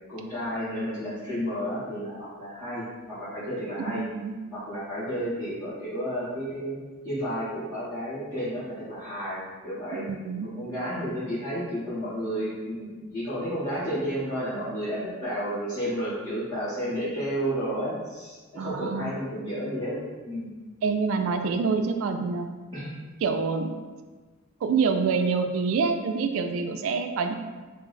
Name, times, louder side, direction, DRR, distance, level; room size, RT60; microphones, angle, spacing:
voice 1, 0.1-4.0 4.5-6.8 7.0-10.0 10.5-20.0 20.3-20.5 22.7-22.9, equal, 15° left, -15 dB, 1.3 m, -31 dB
voice 2, 3.9-4.3 9.9-10.5 18.6-19.1 20.8-22.5 23.2-23.7 24.6-27.3, right 5 dB, 70° right, 7 dB, 0.3 m, -26 dB
3.9 x 2.0 x 4.1 m, 1.3 s
head